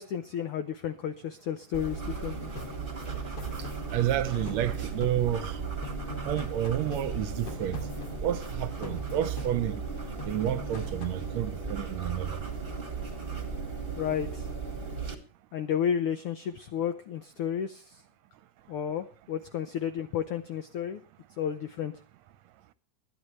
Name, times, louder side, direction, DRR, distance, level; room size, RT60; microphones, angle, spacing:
voice 1, 0.0-2.5 14.0-14.5 15.5-18.0 18.7-21.0 21.4-21.9, left 9 dB, 80° left, 1.2 m, -32 dB
sound 1, 1.7-15.1, right 5 dB, 25° right, 1.7 m, -36 dB
sound 2, 2.6-5.6 5.8-8.5 8.8-9.9 10.2-11.3, left 4 dB, 55° left, 3.3 m, -44 dB
voice 2, 3.9-5.6 6.3-7.8 8.2-9.8 10.2-12.4, right 11 dB, 75° right, 1.8 m, -30 dB
22.0 x 10.0 x 3.1 m
omnidirectional pair, 3.3 m